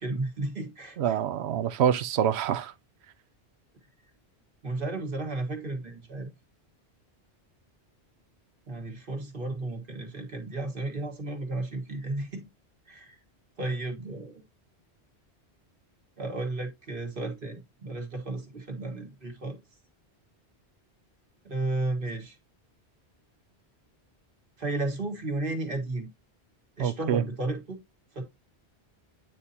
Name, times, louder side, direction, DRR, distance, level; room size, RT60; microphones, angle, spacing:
voice 1, 0.0-1.2 4.6-6.3 8.7-12.5 12.9-13.2 13.6-14.4 16.2-19.6 21.5-22.4 24.6-26.1 26.8-27.8 28.1-28.2, right 2 dB, 55° right, 1.8 m, -33 dB
voice 2, 1.0-2.7 26.8-27.2, right 9 dB, 75° right, 0.9 m, -26 dB
9.1 x 4.1 x 2.8 m
omnidirectional pair, 1.1 m